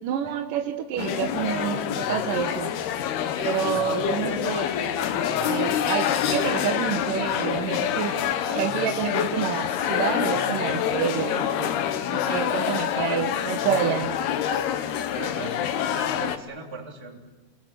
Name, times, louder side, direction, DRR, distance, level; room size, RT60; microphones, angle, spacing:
voice 1, 0.0-2.7 3.4-4.7 5.1-8.1 8.5-11.7 12.1-14.1, right 9 dB, 65° right, 5 dB, 2.3 m, -28 dB
sound 1, 1.0-16.4, left 9 dB, 70° left, 3.0 m, -26 dB
voice 2, 12.3-12.7 15.1-17.2, right 3 dB, 5° right, -1 dB, 2.7 m, -38 dB
29.0 x 20.5 x 7.7 m, 1.2 s
omnidirectional pair, 5.2 m